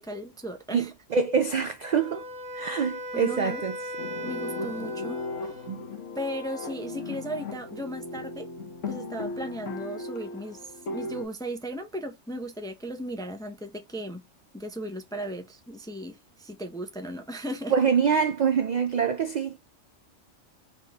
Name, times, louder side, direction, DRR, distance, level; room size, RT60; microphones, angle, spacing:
voice 1, 0.0-0.9 3.1-3.6 4.2-5.2 6.2-8.5 8.9-14.2 14.5-17.7, right 1 dB, 5° left, 0.4 m, -36 dB
voice 2, 1.1-2.2 2.6-3.8 5.7-5.8 17.7-19.6, right 6 dB, 65° right, 0.4 m, -25 dB
Wind instrument woodwind instrument, 1.8-5.9, equal, 45° right, 1.1 m, -38 dB
sound 1, 4.0-11.3, left 3 dB, 85° left, 1.4 m, -36 dB
4.1 x 3.4 x 2.8 m
omnidirectional pair, 1.2 m